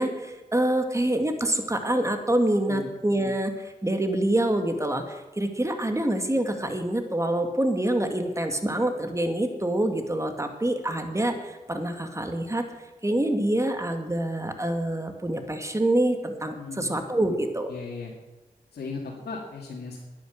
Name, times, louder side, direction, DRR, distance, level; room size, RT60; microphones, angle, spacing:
voice 1, 0.0-12.7 13.0-17.7, right 1 dB, 20° right, 6 dB, 2.2 m, -26 dB
voice 2, 16.5-16.9 17.3-17.4 17.7-18.1 18.7-20.0, left 4 dB, 90° left, -4 dB, 2.0 m, -37 dB
10.5 x 9.7 x 7.9 m, 1.2 s
cardioid pair, 45°, 16 cm